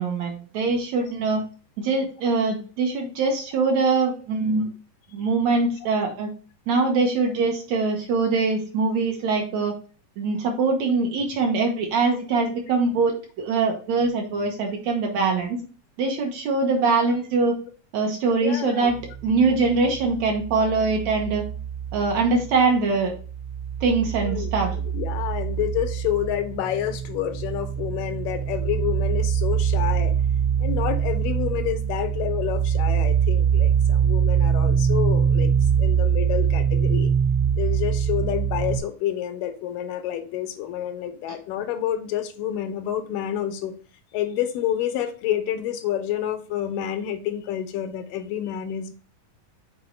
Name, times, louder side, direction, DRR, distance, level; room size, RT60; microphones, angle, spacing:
voice 1, 0.0-1.4 1.8-4.6 5.1-6.3 6.7-9.8 10.2-15.6 16.0-17.6 17.9-19.0 19.2-21.4 21.9-23.1 23.8-24.7, right 4 dB, 65° right, 2 dB, 2.1 m, -23 dB
voice 2, 18.3-18.9 24.2-30.1 30.6-35.5 35.8-37.1 37.6-43.7 44.1-48.9, left 11 dB, 85° left, 7 dB, 2.5 m, -28 dB
sound 1, 18.9-22.7 23.0-38.8, right 8 dB, 55° left, 0.6 m, -24 dB
7.1 x 4.3 x 3.2 m, 0.38 s
omnidirectional pair, 3.8 m